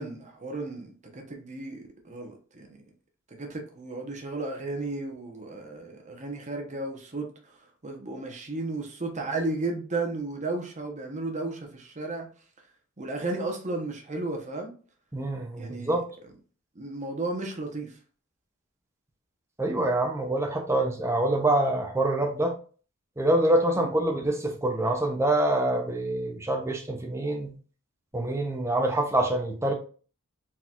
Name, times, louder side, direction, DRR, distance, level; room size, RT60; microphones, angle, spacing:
voice 1, 0.0-2.8 3.4-7.3 7.8-12.3 13.0-14.7 15.6-16.0 16.7-17.9 23.7-23.9, right 2 dB, 35° right, 1.0 m, -34 dB
voice 2, 15.1-16.0 19.6-22.5 23.2-27.6 28.1-29.7, right 1 dB, 15° right, 0.8 m, -25 dB
4.4 x 3.9 x 2.5 m
head